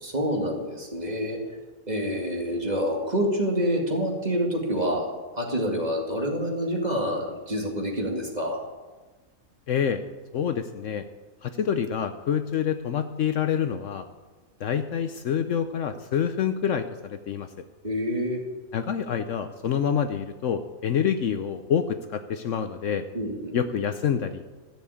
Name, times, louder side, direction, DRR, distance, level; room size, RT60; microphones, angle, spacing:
voice 1, 0.0-1.4 1.9-5.1 5.3-8.6 17.8-18.4 23.1-23.6, equal, 30° right, -1 dB, 2.2 m, -27 dB
voice 2, 9.7-10.0 10.3-11.0 11.4-14.0 14.6-17.5 18.7-23.0 23.5-24.4, left 8 dB, 65° left, 9 dB, 0.9 m, -27 dB
14.0 x 7.2 x 8.4 m, 1.3 s
omnidirectional pair, 1.5 m